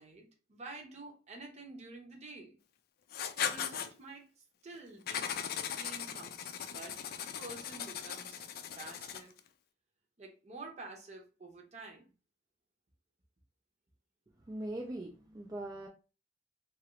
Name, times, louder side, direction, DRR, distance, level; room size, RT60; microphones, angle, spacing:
voice 1, 0.0-2.6 3.4-4.3 4.6-5.3 5.6-8.4 8.8-9.3 10.2-12.1, right 3 dB, 40° right, 2 dB, 0.7 m, -49 dB
Writing, 3.1-3.9 5.1-9.4, left 8 dB, 60° left, 0.4 m, -38 dB
voice 2, 14.5-15.9, right 1 dB, 20° right, 1 dB, 0.3 m, -41 dB
2.9 x 2.4 x 3.0 m, 0.34 s
head